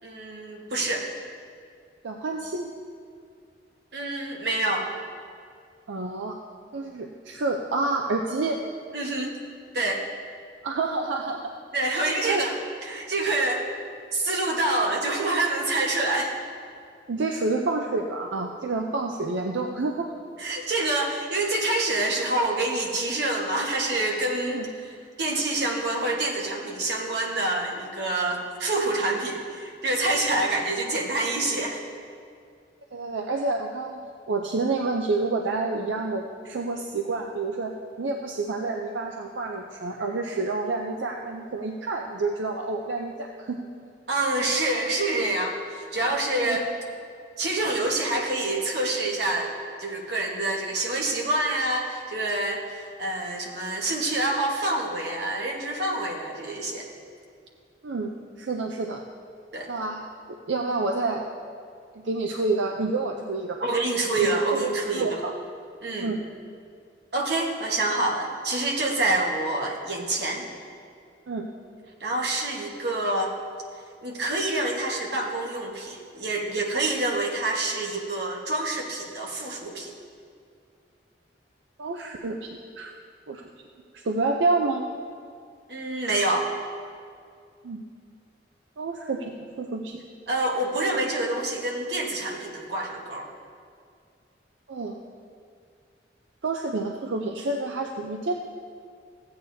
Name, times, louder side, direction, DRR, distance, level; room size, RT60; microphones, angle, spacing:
voice 1, 0.0-1.1 3.9-4.9 8.9-9.4 9.7-10.0 11.7-12.5 12.8-13.6 14.1-16.3 20.4-24.6 25.2-31.8 44.1-46.6 47.4-49.5 49.8-56.9 59.5-59.7 63.6-65.1 65.8-66.1 67.1-70.5 72.0-73.3 74.0-79.9 85.7-86.5 90.3-93.3, right 2 dB, 65° right, -1 dB, 1.4 m, -27 dB
voice 2, 2.0-2.7 5.9-6.4 6.7-8.6 10.6-11.5 11.9-12.0 12.3-12.4 17.1-20.1 24.5-24.7 30.3-30.5 32.9-34.0 34.3-37.7 38.0-43.6 46.4-46.6 57.8-59.0 59.7-61.2 62.0-63.7 64.2-65.3 66.0-66.2 71.3-71.5 81.8-82.9 83.3-83.4 83.9-84.9 87.6-87.8 88.8-90.0 94.7-95.0 96.4-98.3, right 3 dB, 85° right, 2 dB, 0.5 m, -29 dB
15.0 x 8.8 x 2.7 m, 2.3 s
head